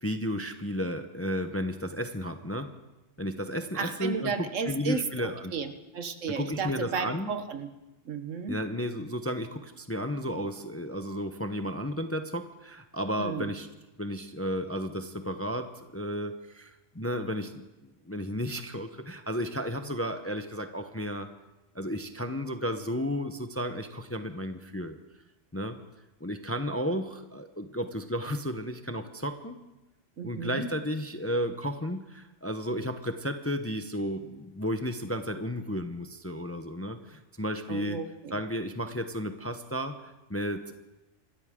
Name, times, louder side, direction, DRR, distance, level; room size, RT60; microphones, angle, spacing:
voice 1, 0.0-2.7 3.2-5.5 6.3-7.3 8.5-13.7 14.0-21.3 21.7-25.0 25.5-25.8 26.2-29.6 30.2-38.0 38.3-40.7, equal, 15° left, 7 dB, 0.7 m, -33 dB
voice 2, 3.7-7.7 8.0-8.6 13.2-13.5 30.2-30.7 37.7-38.4, right 5 dB, 75° right, 8 dB, 1.5 m, -33 dB
26.5 x 13.5 x 3.7 m, 1.0 s
omnidirectional pair, 1.3 m